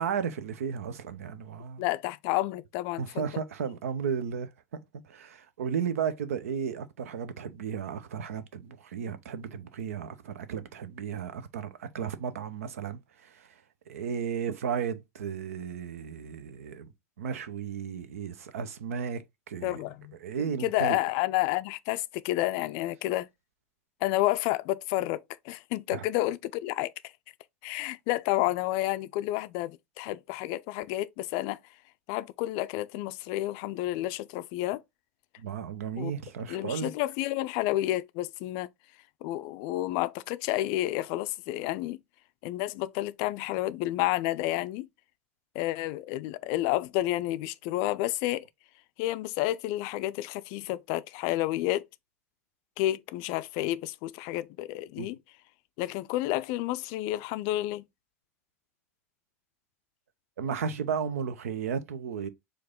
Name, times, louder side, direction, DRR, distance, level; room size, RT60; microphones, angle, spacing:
voice 1, 0.0-1.8 3.0-4.5 5.1-13.5 13.9-16.9 17.2-19.2 19.5-19.8 20.2-21.0 25.9-26.0 35.4-36.9 55.0-55.1 60.4-62.3, right 7 dB, 75° right, 0.6 m, -34 dB
voice 2, 1.8-3.2 19.6-23.3 24.0-26.9 27.6-31.6 32.1-34.8 36.0-36.1 36.5-38.7 39.2-42.0 42.4-44.9 45.5-48.5 49.0-51.8 52.8-55.2 55.8-57.8, left 16 dB, 50° left, 0.4 m, -30 dB
4.6 x 2.6 x 3.6 m
hypercardioid pair, 85°, 8 cm